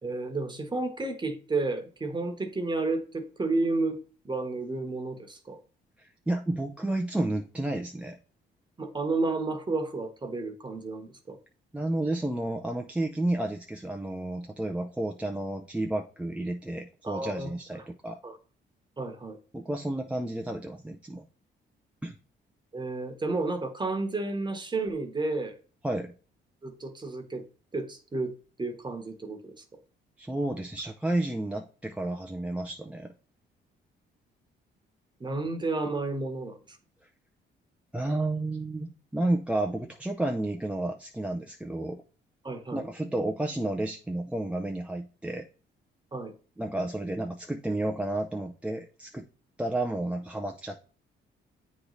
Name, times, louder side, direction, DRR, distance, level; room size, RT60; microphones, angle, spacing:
voice 1, 0.0-5.6 8.8-11.4 17.0-17.5 17.8-17.9 18.2-18.4 19.0-19.4 22.7-25.6 26.6-27.4 27.7-29.6 35.2-36.8 42.4-42.8 46.1-46.3, right 3 dB, 20° right, 1.2 m, -31 dB
voice 2, 6.0-8.2 11.7-18.2 19.5-21.3 22.0-22.2 25.8-26.1 30.2-33.1 37.9-42.0 42.7-45.5 46.6-49.3 49.6-50.8, right 1 dB, 5° right, 0.5 m, -31 dB
8.3 x 3.2 x 4.0 m
cardioid pair, 90°, 20 cm